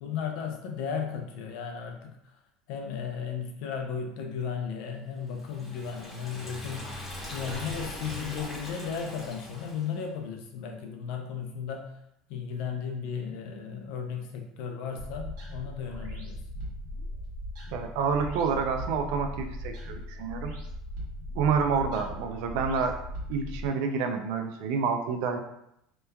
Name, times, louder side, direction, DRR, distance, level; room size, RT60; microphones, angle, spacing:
voice 1, 0.0-2.4 2.7-7.0 7.3-11.9 12.3-16.7, left 7 dB, 65° left, 3 dB, 0.4 m, -35 dB
Liquid, 5.3-10.0, left 1 dB, 10° left, 0.9 m, -41 dB
sound 1, 15.0-23.7, left 1 dB, 85° right, 1.0 m, -39 dB
voice 2, 17.7-20.5 21.3-23.0 23.3-25.4, right 5 dB, 70° right, 5 dB, 0.3 m, -28 dB
2.9 x 2.2 x 2.2 m, 0.78 s
supercardioid pair, 130°, 0 cm